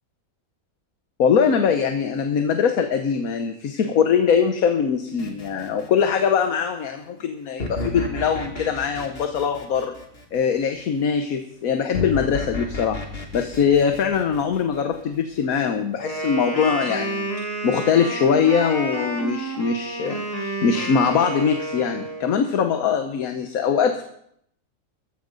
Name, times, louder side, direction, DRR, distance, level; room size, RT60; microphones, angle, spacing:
voice 1, 1.2-9.9 10.3-13.0 13.3-17.3 17.6-24.0, left 6 dB, 80° left, 6 dB, 1.4 m, -22 dB
sound 1, 5.2-6.4 7.6-10.6 11.9-15.2, left 2 dB, 45° left, 2.0 m, -33 dB
Wind instrument woodwind instrument, 16.0-22.3, right 1 dB, 15° left, 3.2 m, -30 dB
14.5 x 14.5 x 3.9 m, 0.72 s
omnidirectional pair, 1.5 m